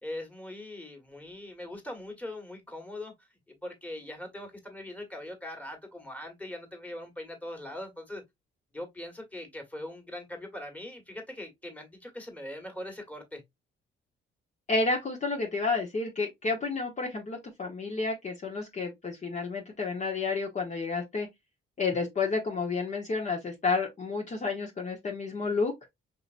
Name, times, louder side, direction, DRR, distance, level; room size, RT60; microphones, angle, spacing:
voice 1, 0.0-8.2 8.7-13.4, left 1 dB, 5° left, 1.7 m, -41 dB
voice 2, 14.7-21.3 21.8-25.7, left 4 dB, 35° left, 1.2 m, -30 dB
5.3 x 2.8 x 2.5 m
cardioid pair, 90°, 20 cm